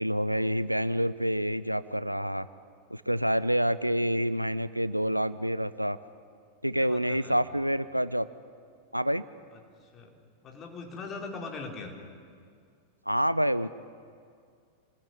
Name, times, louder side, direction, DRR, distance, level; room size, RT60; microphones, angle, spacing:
voice 1, 0.0-2.5 2.9-6.0 6.6-8.3 8.9-9.2 13.1-13.7, equal, 90° right, 16 dB, 0.7 m, -27 dB
voice 2, 6.8-7.4 9.5-11.9, left 4 dB, 30° left, 2 dB, 4.4 m, -41 dB
28.0 x 20.0 x 9.9 m, 2.2 s
figure-of-eight pair, 90°, 0 cm